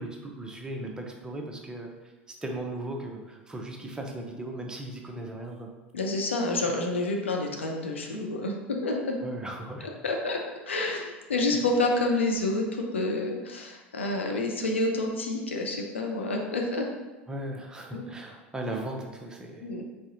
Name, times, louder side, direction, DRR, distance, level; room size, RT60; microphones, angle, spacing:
voice 1, 0.0-1.9 2.4-5.7 9.2-9.9 17.3-19.7, right 1 dB, 10° right, 1 dB, 0.6 m, -37 dB
voice 2, 5.9-9.2 10.0-16.9 17.9-18.0 19.6-19.8, left 2 dB, 80° left, 2 dB, 0.6 m, -28 dB
4.2 x 3.6 x 2.6 m, 1.2 s
figure-of-eight pair, 80°, 6 cm